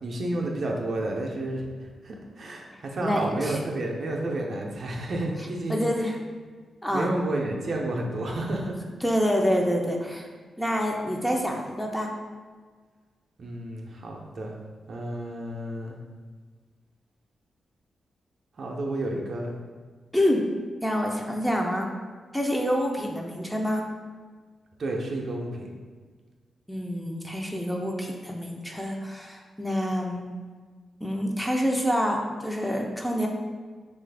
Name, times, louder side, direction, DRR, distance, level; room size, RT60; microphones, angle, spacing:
voice 1, 0.0-5.8 6.9-8.7 13.4-14.5 14.9-16.0 18.6-19.5 24.8-25.7, right 1 dB, 60° right, -1 dB, 0.5 m, -31 dB
voice 2, 3.0-3.7 5.7-6.1 6.8-7.1 9.0-10.3 10.6-12.1 20.1-20.4 20.8-21.9 22.3-23.8 26.7-30.2 31.0-33.3, equal, 5° left, 1 dB, 0.5 m, -27 dB
3.1 x 2.4 x 3.3 m, 1.5 s
cardioid pair, 55°, 0 cm